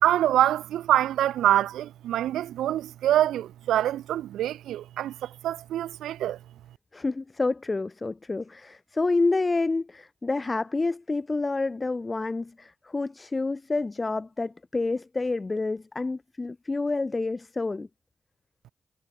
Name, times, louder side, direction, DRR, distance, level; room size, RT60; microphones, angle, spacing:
voice 1, 0.0-6.4, right 12 dB, 90° right, 1.3 m, -25 dB
voice 2, 6.9-17.9, left 3 dB, 40° left, 4.2 m, -28 dB
supercardioid pair, 40°, 0 cm